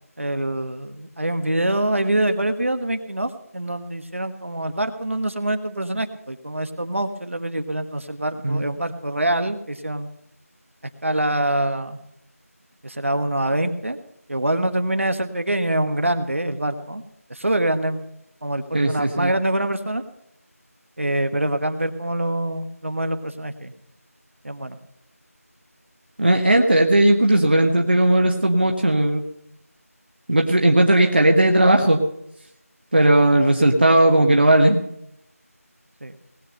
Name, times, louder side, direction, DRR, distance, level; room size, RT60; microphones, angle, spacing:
voice 1, 0.2-10.1 11.0-12.0 12.8-14.0 14.3-17.0 17.3-18.0 18.4-20.0 21.0-23.7 24.4-24.8 36.0-36.1, right 1 dB, 55° right, 9 dB, 1.5 m, -25 dB
voice 2, 18.7-19.3 26.2-29.2 30.3-32.0 32.9-34.8, right 1 dB, 40° right, 2 dB, 1.3 m, -17 dB
19.5 x 8.4 x 5.5 m, 0.74 s
figure-of-eight pair, 175°, 8 cm